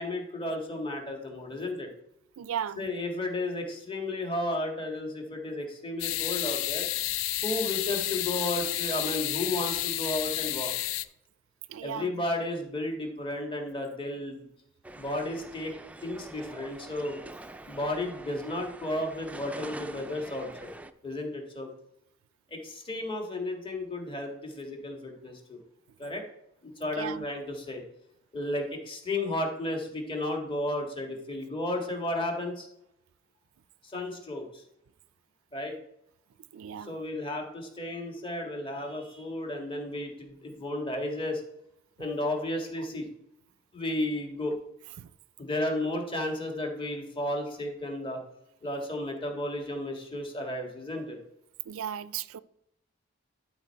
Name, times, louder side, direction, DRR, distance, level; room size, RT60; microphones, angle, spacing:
voice 1, 0.0-1.9 2.8-6.9 7.4-10.7 11.8-14.5 15.0-15.7 16.0-17.2 17.7-20.7 21.0-21.7 22.5-25.6 26.0-26.2 26.6-27.8 28.3-32.7 33.8-34.6 35.5-35.7 36.8-41.4 42.0-43.1 43.7-44.6 45.4-48.2 48.6-51.2, left 1 dB, 25° left, 1.6 m, -33 dB
voice 2, 2.4-2.9 11.7-12.1 27.0-27.2 36.5-37.0 45.0-45.1 51.7-52.4, right 9 dB, 85° right, 0.4 m, -36 dB
sound 1, 6.0-11.0, left 14 dB, 75° left, 0.4 m, -31 dB
sound 2, 14.8-20.9, right 2 dB, 5° right, 0.3 m, -45 dB
12.0 x 4.5 x 4.5 m
head